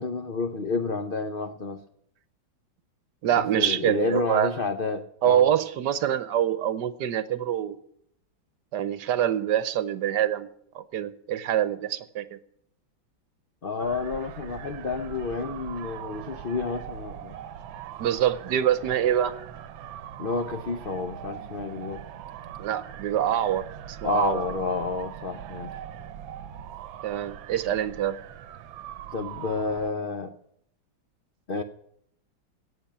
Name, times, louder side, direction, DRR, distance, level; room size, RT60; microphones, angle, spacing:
voice 1, 0.0-1.8 3.4-5.5 13.6-17.4 20.2-22.0 24.0-25.8 29.1-30.3 31.5-31.6, left 4 dB, 85° left, 8 dB, 0.4 m, -30 dB
voice 2, 3.2-4.5 5.2-7.8 8.7-10.5 10.7-12.4 18.0-19.3 22.6-24.4 27.0-28.2, right 10 dB, 65° right, 15 dB, 1.3 m, -25 dB
sound 1, 13.8-29.9, right 10 dB, 85° right, 1.5 m, -41 dB
17.5 x 6.9 x 8.8 m, 0.71 s
omnidirectional pair, 2.1 m